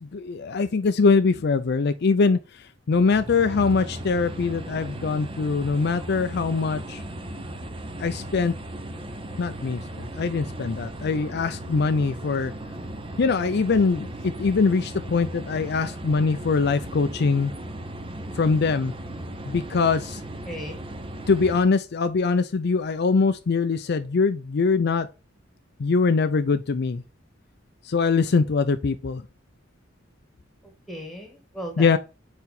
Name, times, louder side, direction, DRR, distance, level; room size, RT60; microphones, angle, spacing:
voice 1, 0.0-2.4 2.9-7.0 8.0-8.5 9.4-12.5 13.2-17.5 18.4-18.9 19.5-20.2 21.3-25.1 25.8-27.0 27.9-29.2 31.8-32.0, left 4 dB, 60° left, 0.5 m, -22 dB
sound 1, 2.9-21.6, right 1 dB, 30° right, 0.7 m, -37 dB
voice 2, 20.4-20.8 30.6-32.0, equal, ahead, 1.7 m, -37 dB
4.7 x 4.4 x 5.2 m
head